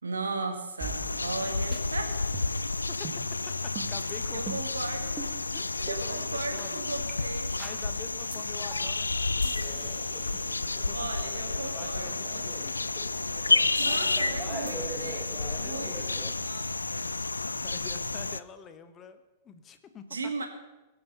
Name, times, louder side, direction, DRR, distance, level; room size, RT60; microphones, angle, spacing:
voice 1, 0.0-2.2 4.3-5.2 5.9-7.5 10.9-12.7 13.8-17.1 20.1-20.5, right 3 dB, 75° right, 5 dB, 1.9 m, -37 dB
sound 1, 0.8-18.4, left 3 dB, 80° left, 0.3 m, -31 dB
sound 2, 0.8-1.4 1.7-1.8 2.3-2.7 3.0-3.2 3.8-3.9 4.5-4.8 5.2-5.3 5.9-6.0 6.6-6.7 7.1-7.2 7.6-7.8 8.3-8.4 8.7-9.0 9.4-11.3 13.8-14.3 14.7-14.8, right 5 dB, 25° right, 1.7 m, -42 dB
voice 2, 3.6-4.4 4.9-5.0 5.5-6.8 7.6-10.0 10.3-10.4 10.7-11.1 11.4-12.9 13.6-13.8 15.5-16.3 17.5-20.2, left 6 dB, 25° left, 9 dB, 1.1 m, -47 dB
sound 3, 9.6-16.3, right 2 dB, 10° right, 1.0 m, -44 dB
20.5 x 7.0 x 5.6 m, 1.1 s
figure-of-eight pair, 100°, 0 cm